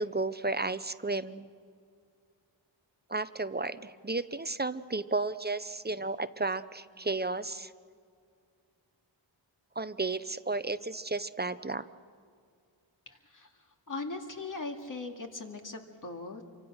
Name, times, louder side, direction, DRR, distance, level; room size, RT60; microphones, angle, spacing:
voice 1, 0.0-1.5 3.1-7.7 9.8-11.8, right 3 dB, 20° right, 13 dB, 0.6 m, -33 dB
voice 2, 13.1-13.5 13.9-16.4, left 3 dB, 45° left, 3 dB, 2.3 m, -39 dB
27.5 x 24.5 x 6.4 m, 2.3 s
wide cardioid pair, 90°, 44 cm